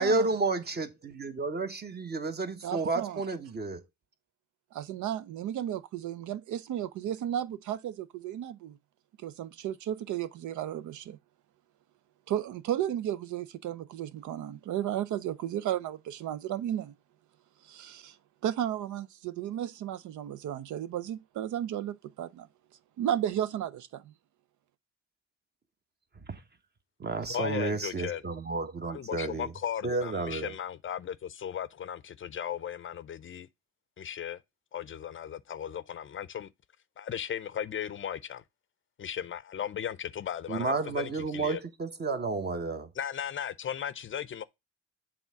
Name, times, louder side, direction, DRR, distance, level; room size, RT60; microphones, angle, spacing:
voice 1, 0.0-3.8 26.3-26.4 27.0-29.5 29.8-30.5 40.5-42.9, right 3 dB, 35° right, 1.2 m, -31 dB
voice 2, 2.6-3.2 4.7-8.8 9.2-11.2 12.3-16.9 17.6-18.2 18.4-22.5 23.0-24.0, right 11 dB, 75° right, 0.6 m, -34 dB
voice 3, 27.3-28.2 28.8-33.5 34.0-34.4 34.7-36.5 37.0-38.4 39.0-41.6 43.0-44.4, left 9 dB, 40° left, 0.5 m, -36 dB
7.1 x 3.6 x 5.6 m
cardioid pair, 90°, 30 cm